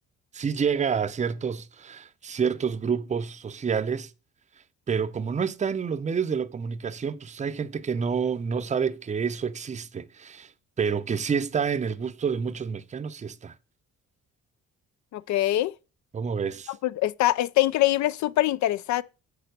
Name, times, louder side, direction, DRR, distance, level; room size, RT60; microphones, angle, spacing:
voice 1, 0.3-4.1 4.9-10.5 10.8-13.5 16.1-16.7, right 6 dB, 25° right, 0.5 m, -28 dB
voice 2, 15.1-15.7 16.8-19.0, left 15 dB, 70° left, 0.5 m, -23 dB
6.7 x 4.3 x 6.6 m
cardioid pair, 90°, 30 cm